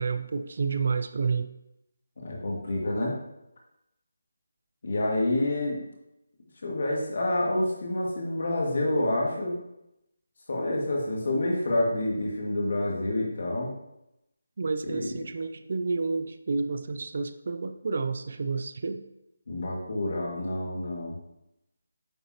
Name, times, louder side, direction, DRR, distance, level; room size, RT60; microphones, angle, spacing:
voice 1, 0.0-1.5 14.6-19.0, right 4 dB, 45° right, 10 dB, 0.4 m, -30 dB
voice 2, 2.2-3.1 4.8-5.8 6.6-9.6 10.5-13.7 14.8-15.1 19.5-21.2, left 1 dB, 55° left, -2 dB, 2.0 m, -28 dB
9.1 x 3.9 x 2.9 m, 0.87 s
figure-of-eight pair, 170°, 0 cm